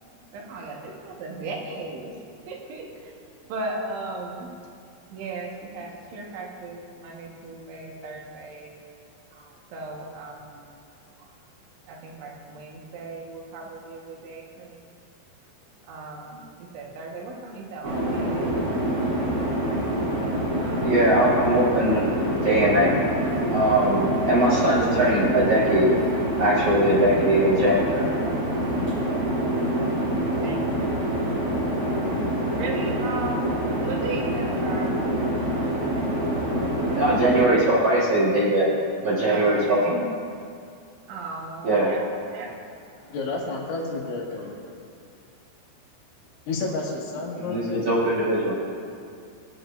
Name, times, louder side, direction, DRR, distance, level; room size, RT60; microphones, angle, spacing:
voice 1, 0.3-2.1 2.5-3.1 3.5-4.5 5.1-8.8 9.3-10.6 11.2-11.3 11.9-14.9 15.8-16.4 16.7-19.4 19.7-19.9 20.6-21.1 28.5-29.6 30.4-31.4 31.7-32.1 32.5-35.0 35.3-35.5 39.2-40.1 41.1-42.0 42.3-42.5 47.1-47.7, right 3 dB, 90° right, -1 dB, 3.8 m, -37 dB
sound 1, 17.8-37.4, right 1 dB, 35° right, 3.0 m, -26 dB
voice 2, 20.8-22.9 23.5-25.9 26.4-28.1 37.0-38.7 39.0-39.8 41.6-41.9 47.4-48.5, right 1 dB, 65° right, -8 dB, 1.6 m, -21 dB
voice 3, 43.0-44.6 46.5-47.8, left 3 dB, 90° left, -3 dB, 4.2 m, -30 dB
21.5 x 9.2 x 2.5 m, 2.3 s
omnidirectional pair, 5.2 m